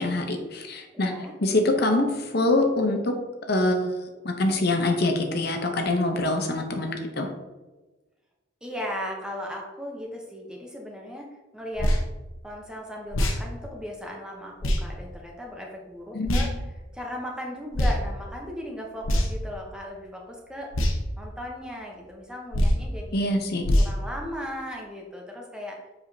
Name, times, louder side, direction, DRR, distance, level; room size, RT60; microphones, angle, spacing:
voice 1, 0.0-1.1 1.4-3.1 3.5-7.3 16.1-16.4 23.1-23.7, left 2 dB, 50° left, 4 dB, 0.8 m, -25 dB
voice 2, 0.9-1.3 8.6-11.3 11.5-11.9 12.4-16.5 16.9-20.7 21.2-23.2 23.8-25.8, left 1 dB, 5° right, -1 dB, 0.8 m, -37 dB
sound 1, 11.8-12.0 13.1-13.4 14.6-14.8 16.3-16.5 17.7-18.0 19.0-19.5 20.7-21.0 22.5-22.8 23.6-23.9, equal, 80° left, 1.0 m, -22 dB
7.3 x 4.8 x 2.8 m, 1.2 s
head